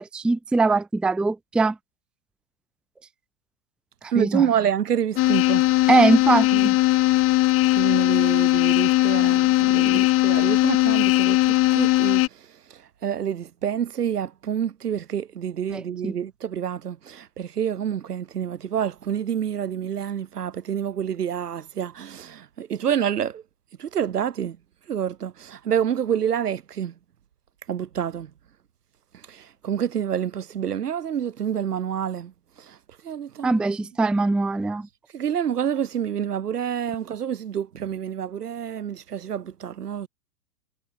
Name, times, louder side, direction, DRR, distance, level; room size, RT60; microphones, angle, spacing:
voice 1, 0.0-1.8 4.2-4.4 5.9-6.8 9.8-10.1 15.7-16.1 33.4-34.9, right 3 dB, ahead, 0.7 m, -22 dB
voice 2, 4.1-5.6 6.5-6.7 7.8-12.5 12.7-23.4 23.8-24.6 24.9-26.9 27.7-28.3 29.3-32.3 32.6-32.8 33.0-33.6 35.1-40.1, right 9 dB, 70° right, 1.8 m, -28 dB
sound 1, 5.2-12.3, left 17 dB, 25° left, 2.4 m, -19 dB
figure-of-eight pair, 110°, 48 cm